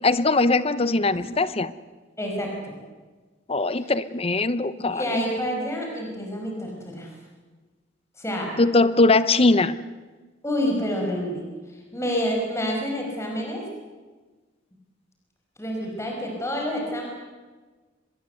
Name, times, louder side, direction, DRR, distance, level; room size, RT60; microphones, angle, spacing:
voice 1, 0.0-1.7 3.5-5.2 8.6-9.8, left 3 dB, 30° left, 15 dB, 0.7 m, -21 dB
voice 2, 2.2-2.8 3.7-3.9 4.9-7.1 8.2-8.6 10.4-11.4 11.7-13.6 15.6-17.0, equal, 15° left, 0 dB, 5.4 m, -28 dB
24.0 x 21.0 x 8.1 m, 1.3 s
head